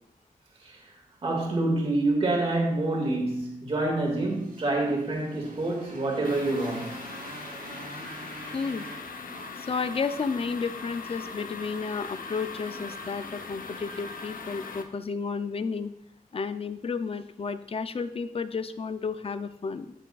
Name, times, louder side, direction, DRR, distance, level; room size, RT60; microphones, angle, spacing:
voice 1, 1.2-7.0, right 2 dB, 40° right, 1.9 m, -27 dB
Motorcycle, 4.1-10.4, right 2 dB, 80° right, 2.6 m, -44 dB
sound 1, 6.2-14.8, left 4 dB, 70° left, 0.8 m, -40 dB
voice 2, 8.5-8.9 9.6-15.9 16.3-19.9, left 5 dB, 40° left, 0.5 m, -32 dB
16.0 x 5.9 x 2.4 m
wide cardioid pair, 170°, 15 cm